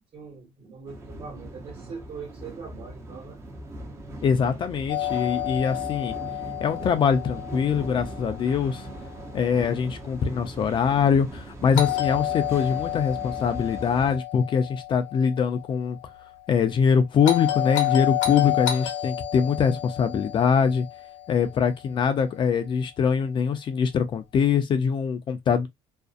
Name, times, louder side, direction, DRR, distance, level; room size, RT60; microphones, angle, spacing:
voice 1, 0.1-3.4, right 5 dB, 45° right, 1.1 m, -41 dB
sound 1, 0.9-14.2, right 1 dB, 20° right, 0.6 m, -40 dB
voice 2, 4.2-6.1 6.6-8.9 9.3-16.0 16.5-20.9 21.3-25.7, left 6 dB, 40° left, 0.4 m, -23 dB
Doorbell, 4.9-8.9 11.8-16.0 17.2-21.7, left 12 dB, 90° left, 0.7 m, -30 dB
2.5 x 2.0 x 2.4 m
cardioid pair, 120°, 13 cm